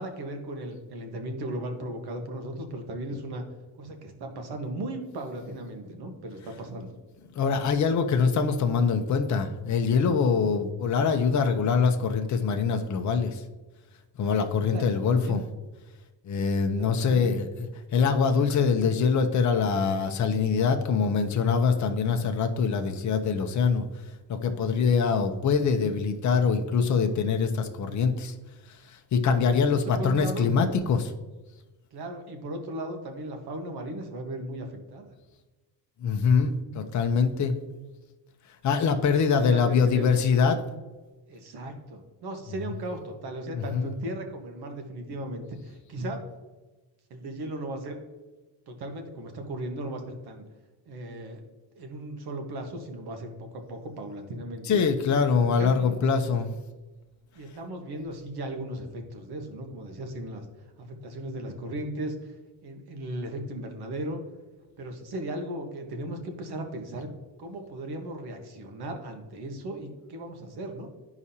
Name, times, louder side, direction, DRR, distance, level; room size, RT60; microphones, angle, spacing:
voice 1, 0.0-3.4 3.8-6.9 14.5-15.4 16.8-17.3 29.7-30.5 31.9-35.1 39.0-40.1 41.3-46.2 47.1-48.1 48.7-50.4 50.9-51.4 51.7-54.8 55.6-55.9 57.3-60.5 60.8-62.4 62.6-64.2 64.8-67.1 67.4-70.9, right 1 dB, 65° right, 4 dB, 1.4 m, -37 dB
voice 2, 7.3-13.5 14.2-15.4 16.2-23.9 24.3-28.3 28.7-31.1 36.0-37.6 38.6-40.6 43.5-44.0 54.7-56.5, left 5 dB, 45° left, 5 dB, 0.7 m, -24 dB
12.5 x 4.9 x 2.8 m, 1.2 s
cardioid pair, 155°, 42 cm